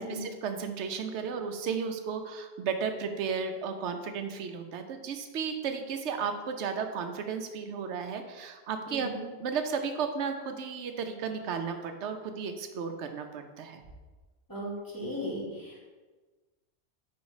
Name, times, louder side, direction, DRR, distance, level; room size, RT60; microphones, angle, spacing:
voice 1, 0.0-9.1 9.4-13.8, right 6 dB, 90° right, 7 dB, 0.9 m, -34 dB
voice 2, 8.9-9.2 14.5-15.8, equal, 20° left, -6 dB, 1.9 m, -37 dB
5.2 x 4.7 x 4.8 m, 1.3 s
omnidirectional pair, 1.1 m